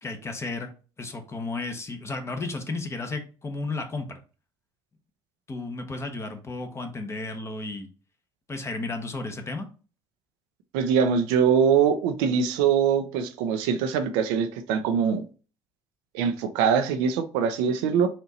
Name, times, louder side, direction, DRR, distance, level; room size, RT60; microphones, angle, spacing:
voice 1, 0.0-0.7 1.0-4.2 5.5-7.9 8.5-9.7, left 3 dB, 25° left, 0.9 m, -33 dB
voice 2, 10.7-15.2 16.1-18.1, right 7 dB, 85° right, 0.6 m, -23 dB
4.4 x 2.6 x 4.1 m
supercardioid pair, 95°, 11 cm